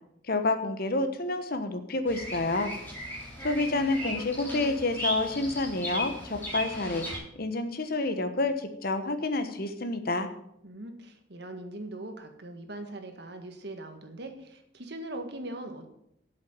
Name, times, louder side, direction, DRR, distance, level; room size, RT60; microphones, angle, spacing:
voice 1, 0.3-2.7 3.4-7.0 7.3-10.3, left 2 dB, 50° left, 8 dB, 1.2 m, -29 dB
Bird vocalization bird call bird song, 2.1-7.2, equal, 10° left, 3.7 m, -37 dB
voice 2, 10.6-15.9, right 1 dB, 60° right, 6 dB, 1.7 m, -41 dB
8.0 x 8.0 x 8.7 m, 0.75 s
head